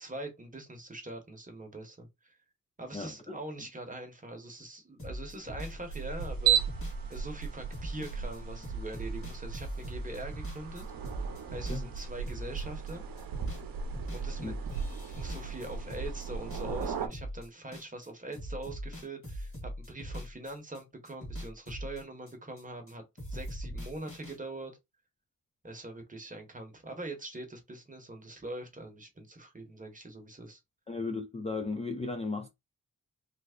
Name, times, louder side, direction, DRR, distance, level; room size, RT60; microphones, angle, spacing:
voice 1, 0.0-2.4 2.8-6.6 7.1-10.8 11.5-13.0 14.1-14.5 15.1-23.0 23.3-24.8 25.6-30.6, right 2 dB, 25° right, 0.9 m, -43 dB
voice 2, 2.9-3.4 11.7-11.8 14.4-14.6 30.9-32.5, left 3 dB, 20° left, 0.4 m, -35 dB
sound 1, 5.0-12.9 13.2-13.7 13.9-18.1 18.3-20.8 21.1-22.9 23.2-24.4, equal, 40° left, 1.8 m, -41 dB
sound 2, 5.5-17.1, right 8 dB, 80° right, 0.6 m, -35 dB
3.2 x 2.0 x 3.6 m
wide cardioid pair, 125°, 34 cm